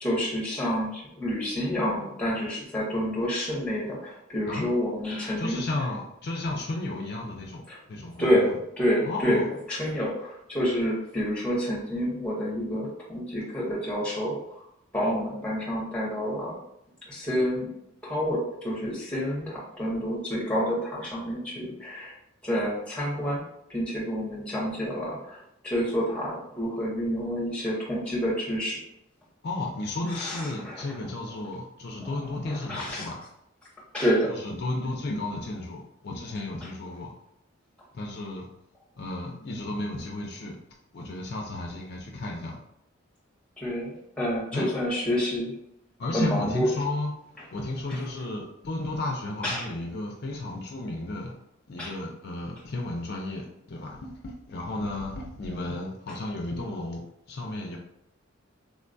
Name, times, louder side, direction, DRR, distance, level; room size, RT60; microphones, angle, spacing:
voice 1, 0.0-5.6 7.7-7.8 8.2-14.6 14.9-16.6 17.1-17.7 18.0-22.1 22.4-28.8 30.1-30.9 32.5-33.1 33.9-34.4 43.6-45.5 46.1-46.7 47.9-48.0 49.4-49.7 51.8-52.0, equal, 5° left, -4 dB, 0.8 m, -28 dB
voice 2, 5.4-7.6 7.9-8.5 9.0-9.4 29.4-33.2 34.3-37.1 37.9-38.5 39.0-40.6 40.9-42.6 44.5-44.7 46.0-47.1 47.5-51.3 51.7-57.0 57.3-57.8, left 2 dB, 50° left, 0 dB, 0.4 m, -33 dB
3.6 x 2.2 x 2.6 m, 0.79 s
head